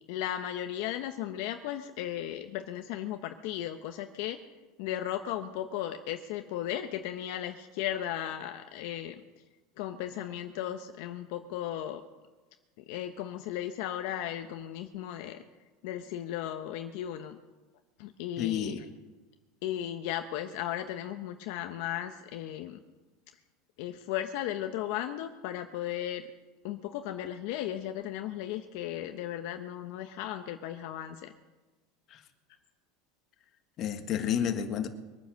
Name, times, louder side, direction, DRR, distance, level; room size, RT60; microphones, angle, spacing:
voice 1, 0.1-4.4 4.8-9.2 9.8-12.0 12.9-15.4 15.8-17.4 18.0-18.8 19.6-22.8 23.8-26.3 26.6-31.3, left 11 dB, 65° left, 7 dB, 0.9 m, -36 dB
voice 2, 18.4-18.8 32.1-32.2 33.8-34.9, left 9 dB, 40° left, 7 dB, 1.5 m, -30 dB
22.5 x 9.6 x 6.4 m, 1.2 s
supercardioid pair, 150°, 0 cm